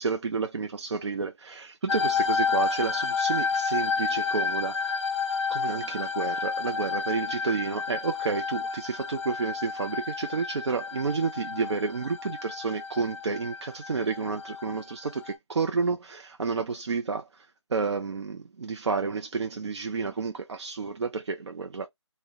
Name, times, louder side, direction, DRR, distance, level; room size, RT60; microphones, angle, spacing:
voice 1, 0.0-5.0 5.5-21.9, right 4 dB, 60° right, 0.4 m, -30 dB
sound 1, 1.9-15.3, left 5 dB, 65° left, 0.7 m, -30 dB
2.4 x 2.1 x 2.6 m
figure-of-eight pair, 175°, 16 cm